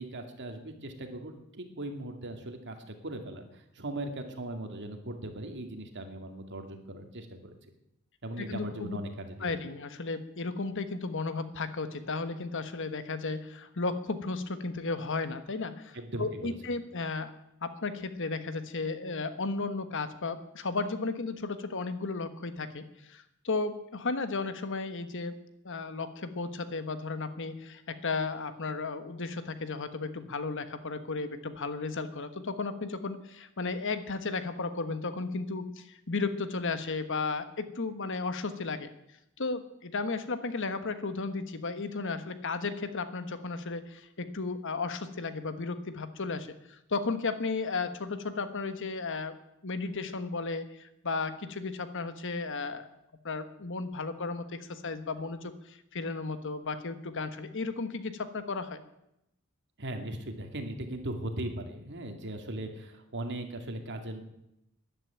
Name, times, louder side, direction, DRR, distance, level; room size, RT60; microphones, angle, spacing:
voice 1, 0.0-7.6 8.2-9.5 15.9-16.6 59.8-64.2, right 1 dB, 55° right, 5 dB, 2.4 m, -39 dB
voice 2, 8.4-9.0 9.4-17.3 17.6-25.3 25.6-38.9 39.4-49.3 49.6-52.9 53.2-58.8, left 3 dB, 60° left, 10 dB, 1.3 m, -34 dB
13.0 x 11.0 x 9.0 m, 0.83 s
head